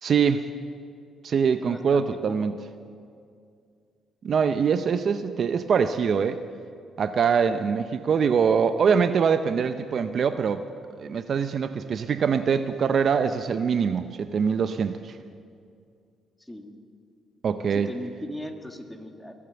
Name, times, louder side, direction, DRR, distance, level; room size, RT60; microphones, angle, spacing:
voice 1, 0.0-0.4 1.2-2.5 4.2-6.4 7.0-10.6 11.0-15.1 17.4-17.9, right 6 dB, 55° right, 10 dB, 0.6 m, -23 dB
voice 2, 1.5-2.3 16.4-16.7 17.7-19.3, left 1 dB, 5° left, 4 dB, 1.7 m, -38 dB
22.5 x 8.6 x 7.0 m, 2.3 s
cardioid pair, 90°, 0 cm